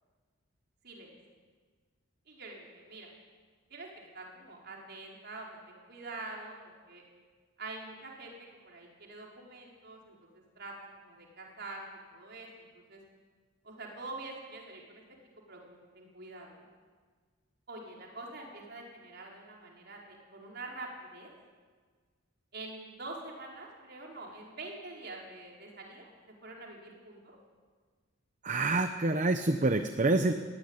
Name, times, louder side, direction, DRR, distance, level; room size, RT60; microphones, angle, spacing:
voice 1, 2.3-3.1 3.7-6.6 6.9-7.0 7.6-8.3 8.6-10.1 10.5-11.8 12.1-13.0 13.6-15.0 15.5-16.7 17.7-21.3 22.5-26.1 26.4-27.4, right 2 dB, 50° right, -2 dB, 5.1 m, -45 dB
voice 2, 28.4-30.3, right 2 dB, 35° right, 8 dB, 0.9 m, -27 dB
19.0 x 16.5 x 9.9 m, 1.5 s
head